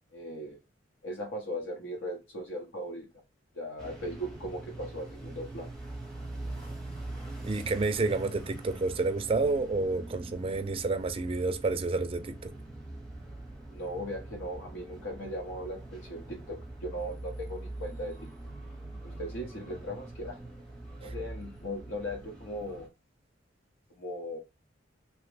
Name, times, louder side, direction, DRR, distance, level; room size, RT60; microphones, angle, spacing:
voice 1, 0.1-0.6 1.0-3.1 3.5-5.7 13.7-18.1 19.0-20.4 21.0-22.9 24.0-24.4, equal, 70° left, 0.8 m, -38 dB
sound 1, 3.8-22.9, right 2 dB, 5° left, 0.7 m, -43 dB
voice 2, 7.4-12.5 21.0-21.1, right 3 dB, 30° right, 0.4 m, -29 dB
3.1 x 2.1 x 3.2 m
head